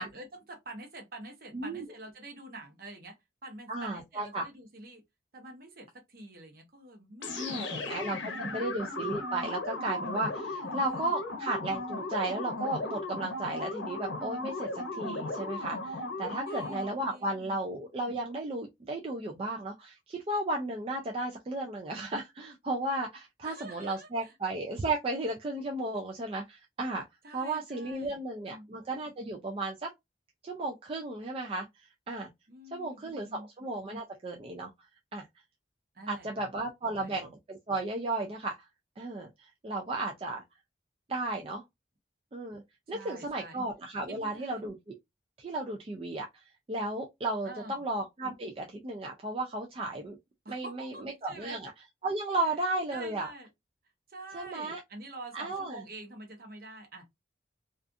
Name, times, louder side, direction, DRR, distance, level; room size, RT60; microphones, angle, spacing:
voice 1, 0.0-3.2 3.4-5.0 5.3-8.7 10.6-11.2 16.5-17.5 23.4-24.4 27.2-28.2 28.5-28.7 32.5-33.5 35.9-36.5 36.8-37.2 42.9-43.6 44.1-44.6 47.4-47.8 50.4-51.6 52.4-52.5 52.9-53.5 54.1-57.1, right 2 dB, 50° right, 0.7 m, -47 dB
voice 2, 1.5-1.9 3.7-4.4 7.3-27.0 27.3-29.9 30.4-32.3 32.7-34.7 35.1-35.3 36.1-38.7 39.0-40.4 41.1-41.6 42.3-42.6 42.9-44.9 45.4-50.2 50.5-51.7 52.0-53.3 54.3-54.8 55.3-55.8, right 2 dB, 30° right, 0.3 m, -34 dB
sound 1, 7.2-17.1, left 2 dB, 90° left, 0.6 m, -36 dB
2.4 x 2.4 x 2.5 m
head